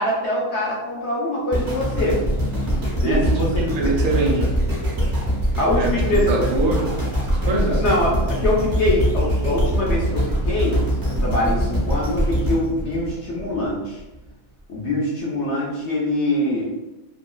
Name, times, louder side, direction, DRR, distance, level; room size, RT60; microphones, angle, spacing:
voice 1, 0.0-2.2 3.0-3.5 3.8-3.9 5.6-6.4 6.8-6.9 7.7-10.8 11.2-14.0 14.7-16.7, left 1 dB, 60° left, -5 dB, 0.8 m, -23 dB
sound 1, 1.5-13.7 14.3-14.4, right 1 dB, 25° right, 0.4 m, -23 dB
voice 2, 3.0-4.5 5.8-5.9 6.3-6.9 7.2-7.8, right 2 dB, 80° right, -1 dB, 1.1 m, -23 dB
2.9 x 2.3 x 2.3 m, 1.0 s
omnidirectional pair, 1.6 m